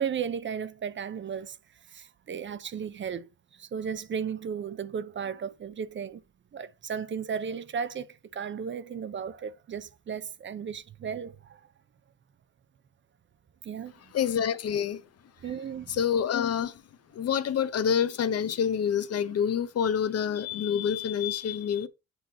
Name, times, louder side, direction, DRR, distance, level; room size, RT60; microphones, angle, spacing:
voice 1, 0.0-1.6 1.9-6.2 6.5-11.7 13.6-13.9 15.4-16.0, right 7 dB, 40° right, 0.6 m, -35 dB
voice 2, 14.1-15.0 15.9-16.8 17.1-21.9, left 8 dB, 55° left, 0.7 m, -27 dB
8.0 x 3.0 x 4.0 m
cardioid pair, 90°, 30 cm